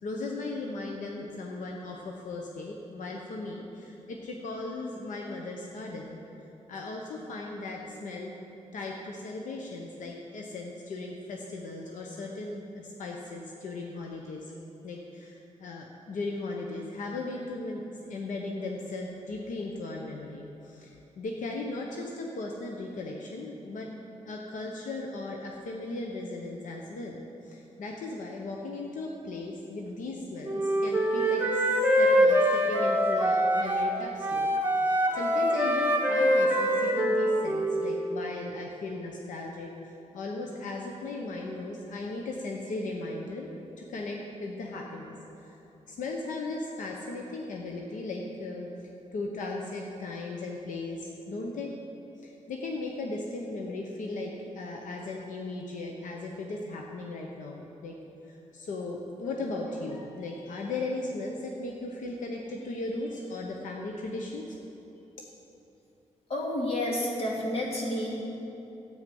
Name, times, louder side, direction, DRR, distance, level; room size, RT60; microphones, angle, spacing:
voice 1, 0.0-6.2 6.7-8.3 8.7-14.4 14.8-23.9 24.3-31.6 31.9-43.5 43.8-45.6 45.8-48.7 49.1-51.7 52.2-58.0 58.3-64.6, left 2 dB, 85° left, 0 dB, 1.0 m, -37 dB
Wind instrument woodwind instrument, 30.4-33.9 34.2-37.7, equal, 15° right, 1.6 m, -24 dB
voice 2, 66.3-68.2, left 1 dB, 50° left, -3 dB, 2.5 m, -30 dB
12.5 x 8.9 x 5.4 m, 3.0 s
wide cardioid pair, 120°, 13 cm